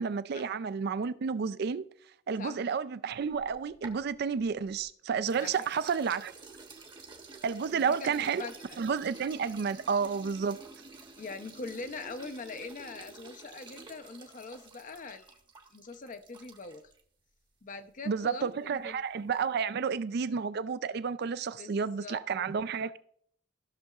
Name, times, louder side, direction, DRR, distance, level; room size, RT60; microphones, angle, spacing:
voice 1, 0.0-1.9 2.3-6.3 7.4-8.4 8.8-10.6 18.1-23.0, right 6 dB, 55° right, 0.4 m, -31 dB
sound 1, 3.2-4.8 5.2-17.0, right 3 dB, 25° right, 0.9 m, -50 dB
voice 2, 7.7-8.5 11.2-15.4 15.7-16.8 17.6-19.0 21.6-22.2, left 3 dB, 40° left, 0.6 m, -43 dB
13.5 x 6.5 x 2.4 m
head